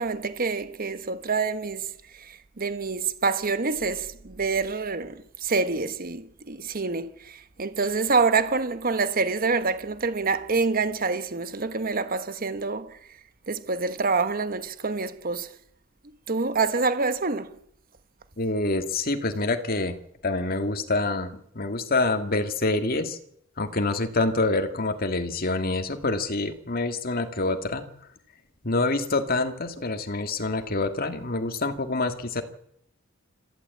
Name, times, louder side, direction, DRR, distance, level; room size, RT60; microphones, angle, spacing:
voice 1, 0.0-1.8 2.2-13.0 13.5-15.5 16.3-17.5, right 4 dB, 45° right, 1.2 m, -26 dB
voice 2, 18.4-20.0 20.2-23.2 23.6-27.9 28.6-32.4, left 2 dB, 45° left, 2.2 m, -26 dB
25.5 x 15.0 x 8.5 m
head